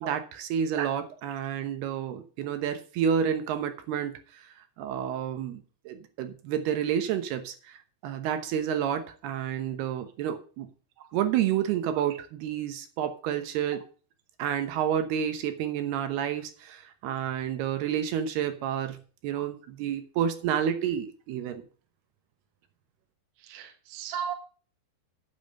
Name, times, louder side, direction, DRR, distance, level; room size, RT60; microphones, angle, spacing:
voice 1, 0.0-4.4 4.8-10.7 11.1-13.8 14.4-21.6, right 9 dB, 80° right, 3.1 m, -30 dB
voice 2, 23.4-24.3, right 8 dB, 55° right, 1.7 m, -36 dB
8.8 x 7.6 x 6.5 m
omnidirectional pair, 4.6 m